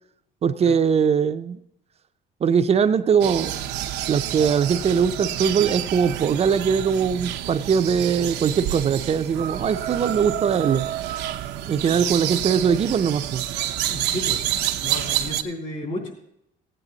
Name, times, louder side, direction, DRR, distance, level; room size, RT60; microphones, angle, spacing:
voice 1, 0.4-1.6 2.4-3.6 4.1-10.8 11.7-13.4, right 7 dB, 40° right, 10 dB, 0.6 m, -21 dB
sound 1, 3.2-15.4, right 12 dB, 85° right, 0.7 m, -28 dB
voice 2, 13.9-14.4 14.8-16.1, left 1 dB, 50° left, 2 dB, 3.3 m, -32 dB
15.5 x 9.0 x 4.0 m, 0.77 s
cardioid pair, 110°, 17 cm